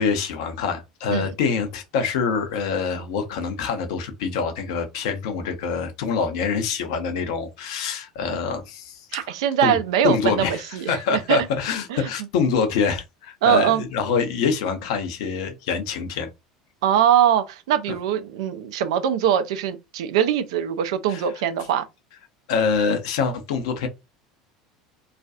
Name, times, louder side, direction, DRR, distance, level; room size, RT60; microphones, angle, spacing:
voice 1, 0.0-9.3 9.6-9.7 10.0-10.6 10.9-16.3 21.1-21.2 22.5-23.9, left 5 dB, 60° left, 0.6 m, -25 dB
voice 2, 9.1-11.4 11.9-12.1 13.4-13.8 16.8-21.8, right 9 dB, 65° right, 0.4 m, -22 dB
2.4 x 2.2 x 2.5 m
figure-of-eight pair, 70°, 3 cm